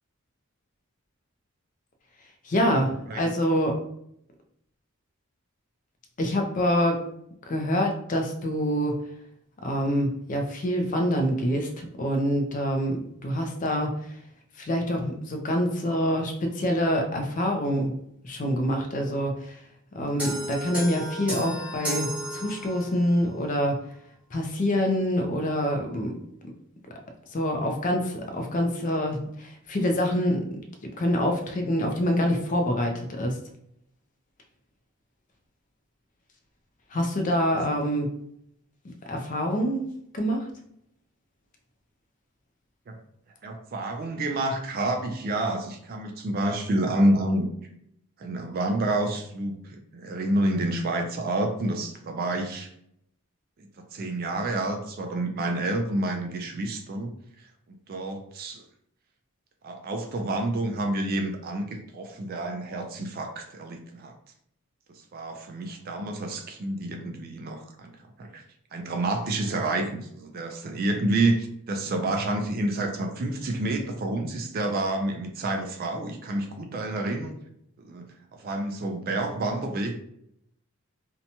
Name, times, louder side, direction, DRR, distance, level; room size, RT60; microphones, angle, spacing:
voice 1, 2.4-3.7 6.2-7.1 7.4-9.0 9.6-13.9 14.6-17.9 18.2-19.6 20.0-23.8 24.3-26.2 27.3-30.4 31.0-33.4 36.9-38.1 38.8-39.9 40.1-40.5, equal, 35° left, 3 dB, 0.4 m, -26 dB
sound 1, 20.2-23.1, right 1 dB, 5° right, 0.8 m, -33 dB
voice 2, 43.4-47.5 48.2-52.7 53.6-57.1 57.9-58.6 59.6-64.1 64.9-67.9 68.2-68.4 68.7-77.3 77.8-80.0, right 1 dB, 40° right, 4 dB, 0.3 m, -29 dB
2.8 x 2.2 x 2.7 m, 0.73 s
head